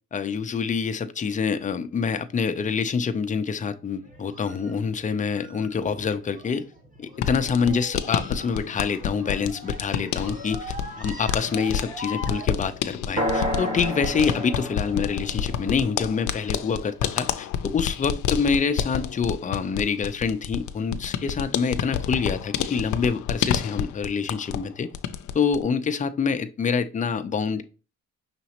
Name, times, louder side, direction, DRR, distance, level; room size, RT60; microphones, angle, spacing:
voice 1, 0.1-6.7 7.0-24.9 25.3-27.6, left 5 dB, 25° left, 0.5 m, -26 dB
sound 1, 4.0-12.5, equal, 25° right, 1.1 m, -42 dB
sound 2, 7.1-24.7 24.9-25.6, left 9 dB, 75° left, 0.5 m, -29 dB
sound 3, 13.2-17.1, equal, 45° right, 2.0 m, -31 dB
5.8 x 3.0 x 2.8 m
cardioid pair, 90°, 30 cm